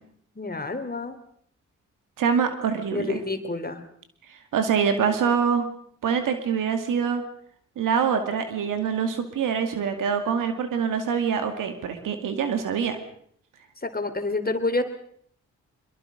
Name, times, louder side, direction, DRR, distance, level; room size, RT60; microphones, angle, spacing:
voice 1, 0.4-1.2 2.9-3.8 13.8-14.8, left 2 dB, 30° left, 8 dB, 3.2 m, -28 dB
voice 2, 2.2-3.2 4.5-5.7 6.0-7.2 7.8-13.0, right 6 dB, 85° right, 7 dB, 2.3 m, -25 dB
23.0 x 22.5 x 5.2 m, 0.63 s
supercardioid pair, 40°, 31 cm